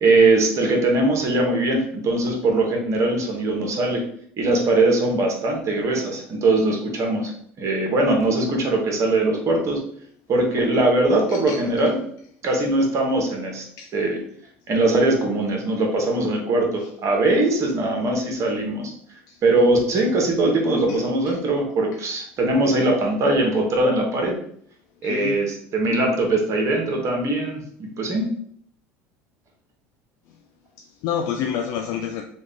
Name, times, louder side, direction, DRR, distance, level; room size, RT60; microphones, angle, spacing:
voice 1, 0.0-4.1 4.4-7.3 7.6-9.8 10.3-12.0 12.4-13.6 13.9-14.2 14.7-18.9 19.4-24.4 25.0-28.3, right 2 dB, 45° right, 1.1 m, -21 dB
voice 2, 10.5-10.8 11.3-11.6 13.8-13.9 19.3-19.4 20.9-21.0 25.0-25.4 30.8-32.2, left 8 dB, 65° left, 0.4 m, -29 dB
3.1 x 2.4 x 3.6 m
hypercardioid pair, 85°, 7 cm